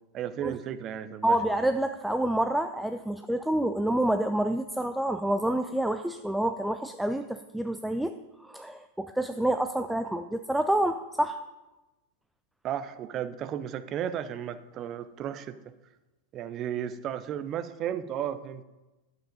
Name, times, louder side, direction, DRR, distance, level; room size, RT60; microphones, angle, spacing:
voice 1, 0.1-1.4 12.6-15.6 16.3-18.6, right 10 dB, 35° right, 13 dB, 0.7 m, -34 dB
voice 2, 1.2-8.1 8.4-11.4, right 1 dB, 5° right, 8 dB, 0.4 m, -28 dB
11.5 x 7.8 x 5.2 m, 1.1 s
figure-of-eight pair, 90°, 0 cm